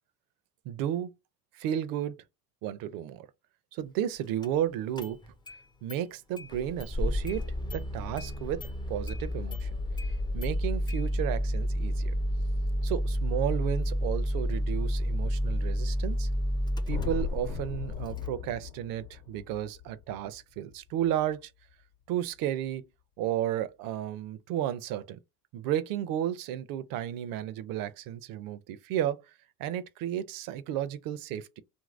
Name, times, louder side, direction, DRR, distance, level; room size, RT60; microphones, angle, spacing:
voice 1, 0.7-1.1 1.5-2.2 2.6-3.3 3.7-5.2 5.8-7.4 7.7-9.8 10.3-12.1 12.8-16.3 16.9-21.5 22.1-22.9 23.2-25.2 25.5-29.2 29.6-31.6, right 11 dB, 50° right, 0.5 m, -33 dB
Engine starting, 4.4-4.5 5.0-5.6 5.9-6.0 6.4-18.3, equal, 10° left, 0.4 m, -30 dB
sound 1, 16.8-21.2, left 8 dB, 80° left, 0.9 m, -40 dB
2.8 x 2.6 x 2.4 m
hypercardioid pair, 75°, 45 cm